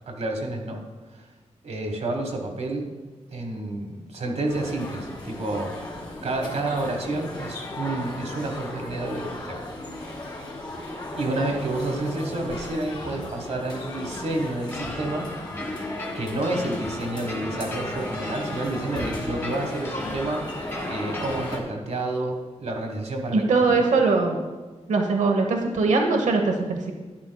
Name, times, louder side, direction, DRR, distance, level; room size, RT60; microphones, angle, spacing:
voice 1, 0.1-0.8 1.1-1.3 1.6-2.9 3.3-5.8 6.2-9.6 11.1-15.3 16.1-23.6, right 2 dB, 65° right, 3 dB, 1.4 m, -29 dB
sound 1, 4.5-21.6, left 1 dB, 35° left, 1.8 m, -36 dB
sound 2, 14.7-21.6, left 1 dB, 20° left, 1.3 m, -35 dB
voice 2, 23.3-24.4 24.9-26.9, right 3 dB, 85° right, 3 dB, 1.0 m, -21 dB
12.0 x 10.5 x 2.3 m, 1.3 s
wide cardioid pair, 155°, 12 cm